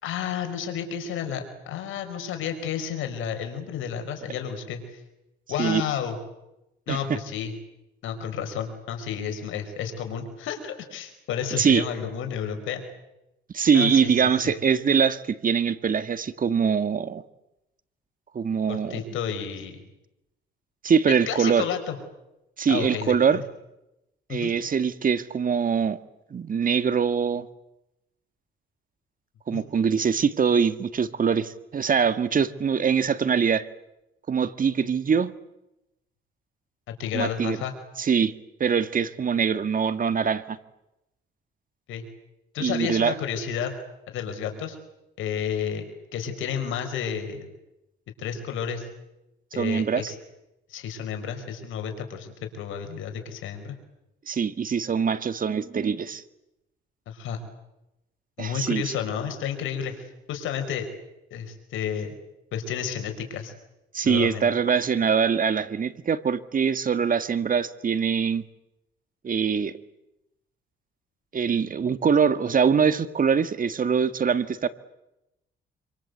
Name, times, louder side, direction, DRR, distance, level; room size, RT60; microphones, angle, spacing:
voice 1, 0.0-5.0 5.5-6.2 6.9-7.5 8.0-12.8 13.7-14.1 18.7-19.8 21.1-22.0 22.7-23.4 24.3-24.5 29.5-29.6 37.0-37.7 41.9-42.0 42.5-43.7 44.1-44.8 45.2-45.8 46.1-47.5 48.2-48.9 49.5-50.2 50.7-53.8 57.1-57.4 58.4-60.9 61.3-62.2 62.5-63.5 64.0-64.5, left 8 dB, 85° left, 6 dB, 5.0 m, -31 dB
voice 2, 6.9-7.2 11.6-11.8 13.5-17.2 18.3-19.0 20.8-21.6 22.6-23.4 24.3-26.0 26.3-27.5 29.5-33.7 34.3-35.3 37.1-37.6 38.0-38.3 38.6-40.6 42.6-43.1 49.5-50.1 54.3-56.2 58.4-58.9 63.9-68.4 69.2-69.7 71.3-74.7, right 6 dB, 45° right, 12 dB, 1.8 m, -23 dB
27.5 x 26.0 x 8.1 m, 0.89 s
cardioid pair, 90°, 20 cm